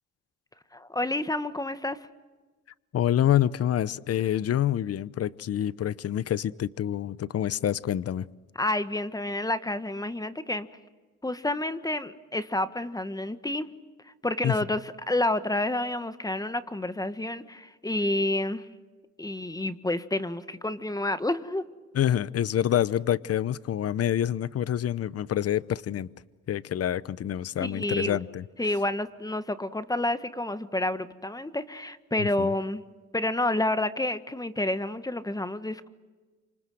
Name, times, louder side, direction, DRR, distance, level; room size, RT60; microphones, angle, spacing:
voice 1, 0.7-2.0 8.6-10.7 11.2-13.7 14.2-18.7 19.2-21.6 27.6-28.2 28.6-32.8 33.1-35.9, left 1 dB, 10° left, 12 dB, 1.4 m, -29 dB
voice 2, 2.9-8.2 14.4-14.6 21.9-26.1 26.5-28.4 32.2-32.5, left 11 dB, 55° left, 19 dB, 0.8 m, -27 dB
28.0 x 26.0 x 7.8 m, 1.3 s
cardioid pair, 90°, 30 cm